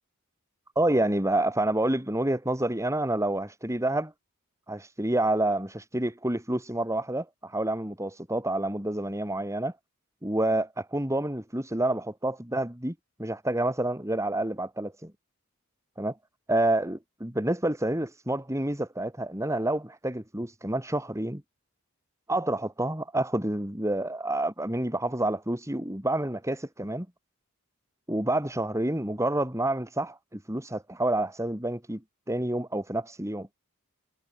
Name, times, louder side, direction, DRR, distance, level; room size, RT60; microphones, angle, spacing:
voice 1, 0.7-4.1 4.7-9.7 10.2-15.1 16.0-16.1 16.5-21.4 22.3-27.1 28.1-32.0 32.3-33.5, right 1 dB, 15° right, 3.1 m, -28 dB
head